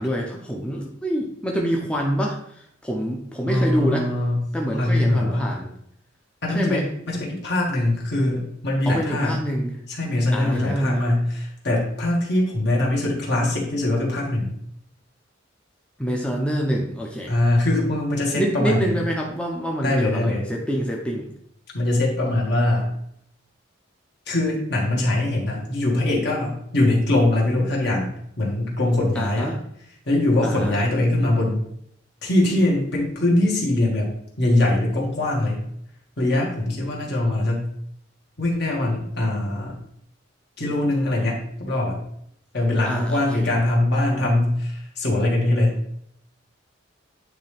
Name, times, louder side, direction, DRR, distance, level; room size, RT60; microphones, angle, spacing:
voice 1, 0.0-4.1 4.5-5.7 6.5-6.8 8.9-9.8 10.3-11.0 16.0-17.3 18.3-21.3 29.2-29.6 30.4-30.9 42.8-43.5, equal, 5° left, -1 dB, 0.6 m, -26 dB
voice 2, 3.5-4.4 4.7-5.5 6.4-9.4 9.9-14.5 17.3-19.0 19.8-20.5 21.7-22.9 24.3-29.5 30.1-31.6 32.2-34.1 34.4-35.6 36.2-37.7 38.4-39.7 40.6-42.0 42.5-45.8, left 1 dB, 60° left, -3 dB, 1.7 m, -22 dB
9.3 x 3.3 x 3.4 m, 0.70 s
head